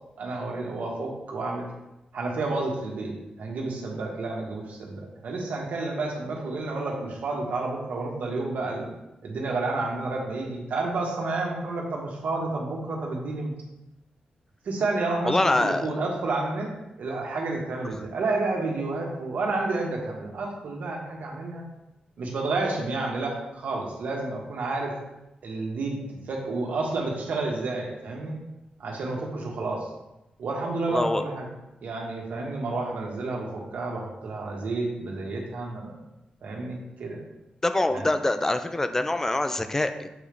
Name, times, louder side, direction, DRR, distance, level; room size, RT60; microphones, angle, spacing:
voice 1, 0.2-1.7 2.1-8.9 9.2-13.5 14.6-16.7 17.0-21.6 22.2-25.0 25.4-28.4 28.8-29.9 30.4-31.5 31.8-36.0 36.4-37.2 37.9-38.1, right 3 dB, 75° right, -1 dB, 1.5 m, -30 dB
voice 2, 15.2-16.0 17.9-18.0 30.9-31.2 37.6-40.1, left 2 dB, 15° left, 9 dB, 0.4 m, -25 dB
7.1 x 3.4 x 5.3 m, 0.94 s
wide cardioid pair, 145°, 3 cm